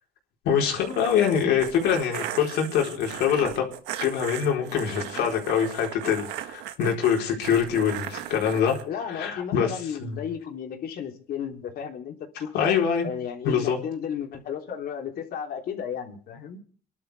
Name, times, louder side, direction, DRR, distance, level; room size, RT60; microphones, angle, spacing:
voice 1, 0.4-3.7 4.0-8.8 9.1-9.7 10.0-10.2 12.5-13.1 13.4-13.8, left 7 dB, 85° left, 0 dB, 4.3 m, -24 dB
sound 1, 0.7-8.8, right 12 dB, 85° right, 1.5 m, -37 dB
voice 2, 8.8-12.8 13.0-16.6, left 8 dB, 65° left, 3 dB, 3.3 m, -34 dB
27.5 x 11.5 x 3.5 m, 0.42 s
cardioid pair, 110°, 17 cm